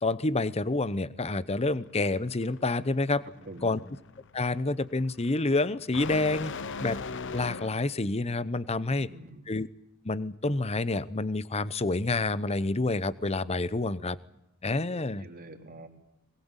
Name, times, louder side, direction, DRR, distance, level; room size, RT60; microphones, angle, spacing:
voice 1, 0.0-3.2 3.6-3.8 4.3-6.5 6.8-7.0 7.3-9.1 9.5-9.7 10.0-14.2 14.6-15.3, left 2 dB, 30° left, 17 dB, 0.9 m, -28 dB
sound 1, 1.5-8.0, left 4 dB, 60° left, 1.0 m, -41 dB
voice 2, 3.5-3.9 8.8-9.4 14.9-15.9, right 2 dB, 45° right, 4 dB, 3.6 m, -47 dB
23.0 x 20.5 x 8.2 m, 0.83 s
head